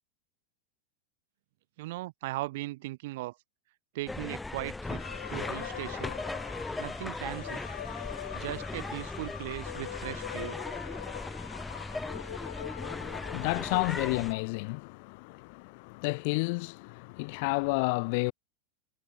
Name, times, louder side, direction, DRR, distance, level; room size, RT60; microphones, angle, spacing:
voice 1, 1.8-3.4 3.9-5.0 5.3-6.2 6.8-7.6 8.3-10.6, right 19 dB, 65° right, 2.2 m, -38 dB
sound 1, 4.1-14.3, left 2 dB, 5° left, 1.1 m, -38 dB
sound 2, 4.8-14.4, left 13 dB, 80° left, 0.6 m, -43 dB
voice 2, 12.8-18.3, left 29 dB, 55° left, 1.0 m, -31 dB
supercardioid pair, 140°, 0 cm